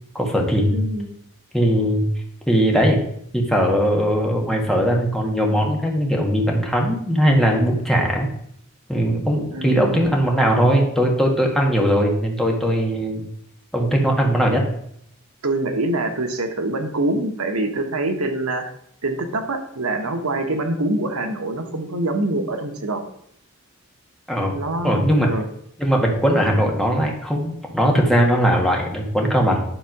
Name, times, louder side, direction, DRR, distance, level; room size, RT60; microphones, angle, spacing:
voice 1, 0.1-0.8 1.5-2.1 2.5-3.0 3.3-8.3 8.9-13.2 13.7-14.6 24.3-24.5 24.8-25.3 25.8-29.6, equal, ahead, -1 dB, 1.5 m, -19 dB
voice 2, 0.7-1.1 9.5-10.1 15.4-18.7 19.0-23.0 24.5-25.4, right 2 dB, 80° right, 6 dB, 1.1 m, -25 dB
10.5 x 3.5 x 5.9 m, 0.70 s
head